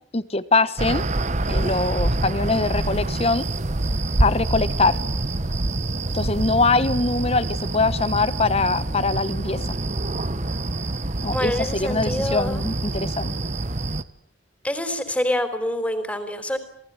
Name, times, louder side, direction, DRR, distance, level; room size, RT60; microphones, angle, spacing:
voice 1, 0.1-1.0 1.5-3.5 4.2-5.0 6.1-9.6 11.2-13.3, left 3 dB, 30° left, 15 dB, 1.2 m, -23 dB
sound 1, 0.8-14.0, right 2 dB, 40° right, 1.1 m, -26 dB
voice 2, 11.3-12.7 14.6-16.6, left 1 dB, 5° left, 9 dB, 3.8 m, -26 dB
28.0 x 19.0 x 9.7 m, 0.69 s
head